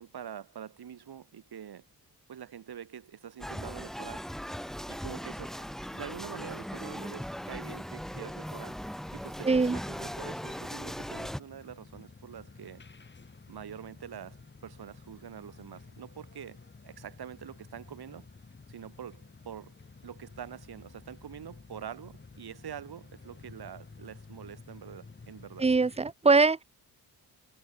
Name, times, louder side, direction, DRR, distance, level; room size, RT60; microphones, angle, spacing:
voice 1, 0.0-1.8 2.3-4.3 4.9-5.7 5.9-8.8 9.1-12.8 13.5-18.3 18.7-19.7 20.0-25.7, right 9 dB, 70° right, 6.0 m, -45 dB
sound 1, 3.4-11.4, equal, ahead, 1.4 m, -39 dB
voice 2, 9.5-9.8 25.6-26.6, right 4 dB, 15° right, 0.7 m, -22 dB
sound 2, 10.0-26.1, left 4 dB, 30° left, 6.1 m, -52 dB
wide cardioid pair, 150°, 39 cm